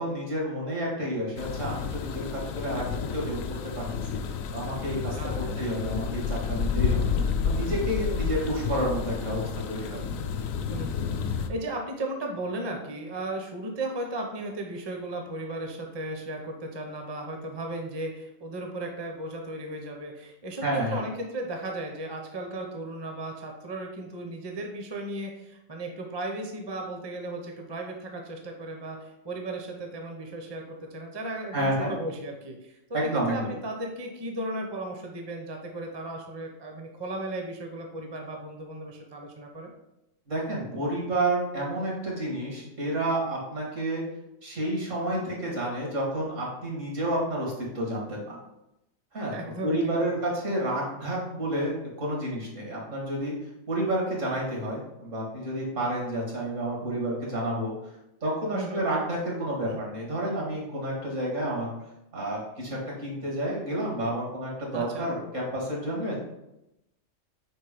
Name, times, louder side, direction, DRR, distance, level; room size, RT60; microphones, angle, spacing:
voice 1, 0.0-4.2 4.5-7.1 7.4-10.1 20.6-21.0 31.5-31.9 32.9-33.5 40.3-44.0 44.4-48.4 49.1-49.3 49.6-53.3 53.7-57.7 58.2-61.7 62.1-66.2, right 1 dB, 65° right, -3 dB, 2.2 m, -30 dB
sound 1, 1.4-11.5, left 6 dB, 80° left, 1.0 m, -30 dB
voice 2, 5.2-5.6 10.7-39.7 49.3-50.2 58.5-58.9 59.6-59.8 64.7-65.1, right 1 dB, 25° right, 2 dB, 0.7 m, -36 dB
4.9 x 4.5 x 5.0 m, 0.89 s
omnidirectional pair, 1.4 m